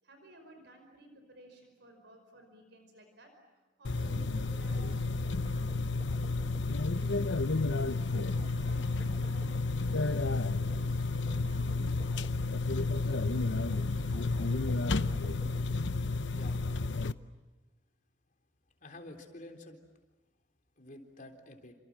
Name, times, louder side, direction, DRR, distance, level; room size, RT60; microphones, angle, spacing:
voice 1, 0.0-4.9 8.2-10.4, right 1 dB, 70° right, 5 dB, 5.2 m, -56 dB
sound 1, 3.8-17.1, left 3 dB, 80° left, 0.8 m, -31 dB
sound 2, 4.0-16.2, right 1 dB, 30° right, 1.1 m, -50 dB
voice 2, 16.3-16.6 18.8-19.8 20.8-21.7, left 1 dB, 45° left, 4 dB, 3.7 m, -49 dB
29.0 x 27.0 x 7.5 m, 1.2 s
head